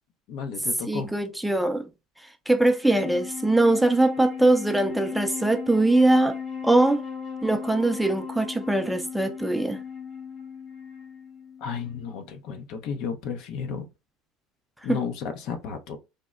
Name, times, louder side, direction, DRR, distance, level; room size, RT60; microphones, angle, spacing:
voice 1, 0.3-1.1 11.6-13.9 14.8-16.0, left 6 dB, 65° left, 0.6 m, -33 dB
voice 2, 0.9-1.9 2.5-6.4 6.6-7.0 7.4-9.8 14.9-15.0, right 2 dB, 5° right, 0.4 m, -22 dB
Wind instrument woodwind instrument, 2.7-12.2, left 6 dB, 45° left, 1.2 m, -37 dB
3.5 x 2.0 x 2.3 m
supercardioid pair, 95°, 0 cm